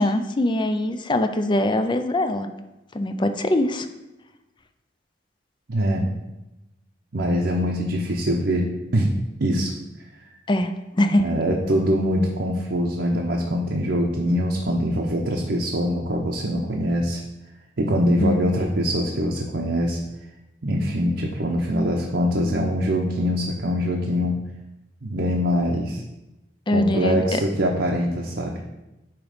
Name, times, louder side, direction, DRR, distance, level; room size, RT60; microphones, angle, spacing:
voice 1, 0.0-2.5 2.9-3.9 10.5-11.3 18.2-18.4 26.7-27.4, left 1 dB, 25° left, 8 dB, 0.4 m, -22 dB
voice 2, 5.7-6.1 7.1-9.1 9.4-9.7 11.2-17.2 17.8-20.0 20.6-24.4 25.0-26.0 26.7-28.5, equal, 70° right, -1 dB, 0.8 m, -23 dB
8.9 x 3.0 x 4.9 m, 1.0 s
head